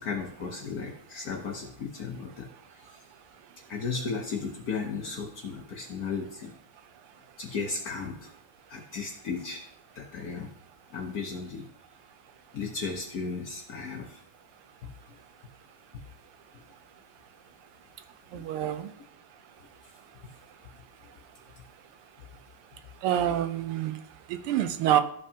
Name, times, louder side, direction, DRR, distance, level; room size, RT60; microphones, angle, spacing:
voice 1, 0.0-3.0 3.7-6.6 7.4-8.3 8.7-9.6 10.0-10.5 10.9-11.7 12.5-14.2 15.1-15.2 18.3-18.5 23.3-23.4, left 5 dB, 60° left, 2 dB, 1.0 m, -35 dB
voice 2, 18.3-18.9 23.0-24.0 24.3-25.0, right 11 dB, 85° right, 9 dB, 1.6 m, -26 dB
13.5 x 5.3 x 2.8 m, 0.66 s
omnidirectional pair, 2.4 m